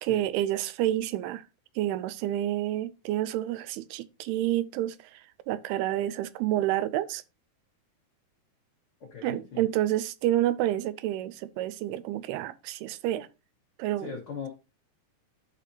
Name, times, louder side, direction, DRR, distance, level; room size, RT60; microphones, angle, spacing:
voice 1, 0.0-1.4 1.8-7.2 9.2-13.3 13.8-14.1, right 13 dB, 85° right, 2.5 m, -29 dB
voice 2, 9.0-9.7 14.0-14.5, left 6 dB, 50° left, 1.7 m, -39 dB
13.5 x 5.1 x 2.8 m
omnidirectional pair, 4.6 m